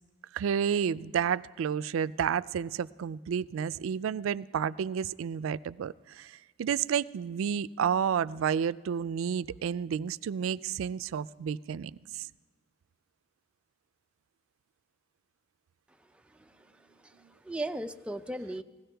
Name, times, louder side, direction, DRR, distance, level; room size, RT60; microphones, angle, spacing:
voice 1, 0.3-12.3, right 7 dB, 85° right, 16 dB, 0.3 m, -31 dB
voice 2, 16.1-18.6, right 1 dB, 5° right, 8 dB, 0.4 m, -38 dB
20.5 x 16.0 x 3.4 m, 1.3 s
head